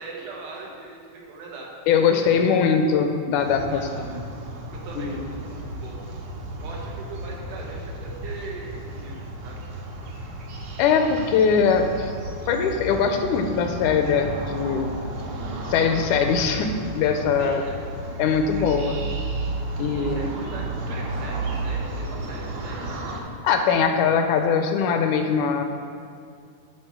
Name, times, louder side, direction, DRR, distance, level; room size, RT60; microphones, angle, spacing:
voice 1, 0.0-1.7 2.0-2.5 3.7-4.2 4.7-6.0 6.6-9.6 17.4-17.8 20.0-22.9, right 3 dB, 90° right, -2 dB, 3.0 m, -40 dB
voice 2, 1.9-4.2 5.0-5.2 10.8-12.1 12.5-14.9 15.7-17.6 18.2-19.0 19.8-20.3 23.4-25.6, left 6 dB, 80° left, 6 dB, 2.0 m, -21 dB
sound 1, 3.4-23.2, right 2 dB, 65° right, 2.1 m, -33 dB
11.0 x 4.3 x 6.0 m, 2.2 s
omnidirectional pair, 3.6 m